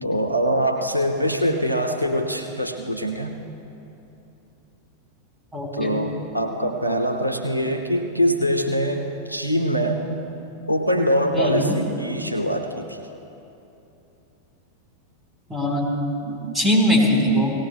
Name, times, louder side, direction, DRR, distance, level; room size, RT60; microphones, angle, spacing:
voice 1, 0.0-3.4 5.7-10.1 10.7-13.0 16.3-16.6, equal, 85° right, 5 dB, 0.7 m, -23 dB
voice 2, 5.5-6.0 11.3-11.8 15.5-15.9 16.5-17.5, equal, 10° right, -2 dB, 3.8 m, -21 dB
18.0 x 16.5 x 3.3 m, 2.9 s
figure-of-eight pair, 90°, 0 cm